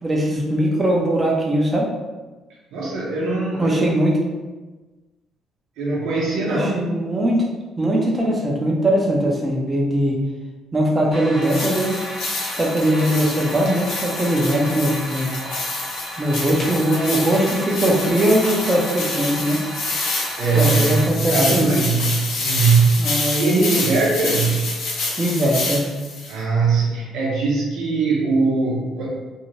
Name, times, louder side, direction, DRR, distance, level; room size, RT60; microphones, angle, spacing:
voice 1, 0.0-1.9 3.6-4.2 6.5-7.5 7.8-10.2 10.7-12.1 12.6-15.3 16.2-19.7 20.5-21.8 23.0-23.8 25.2-25.9, right 1 dB, 15° right, -2 dB, 0.6 m, -20 dB
voice 2, 2.7-3.8 5.8-6.9 20.4-24.7 26.3-29.1, right 4 dB, 85° right, -5 dB, 0.7 m, -21 dB
sound 1, 11.1-21.1, equal, 50° left, 1.4 m, -33 dB
sound 2, 11.4-26.3, left 3 dB, 80° left, 0.7 m, -28 dB
2.7 x 2.6 x 3.0 m, 1.2 s
cardioid pair, 135°, 0 cm